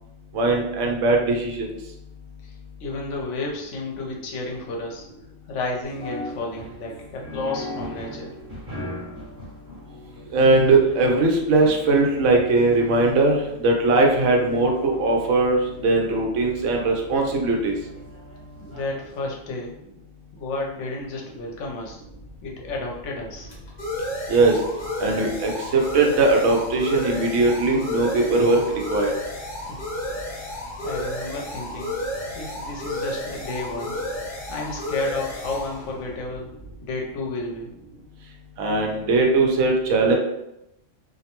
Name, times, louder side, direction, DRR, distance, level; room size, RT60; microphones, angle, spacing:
voice 1, 0.3-1.7 10.3-17.7 24.3-24.6 25.0-28.6 28.9-29.1 38.6-40.1, right 3 dB, 75° right, 1 dB, 0.9 m, -20 dB
voice 2, 2.8-5.1 5.5-8.3 18.6-19.7 20.3-22.0 22.4-23.5 29.6-29.8 30.3-31.9 32.3-34.0 34.5-36.5 36.8-37.7, left 2 dB, 75° left, -1 dB, 0.9 m, -32 dB
sound 1, 5.8-19.1, equal, 45° right, 1.3 m, -40 dB
sound 2, 21.9-37.3, left 1 dB, 40° left, 0.8 m, -32 dB
2.5 x 2.1 x 2.9 m, 0.85 s
omnidirectional pair, 1.3 m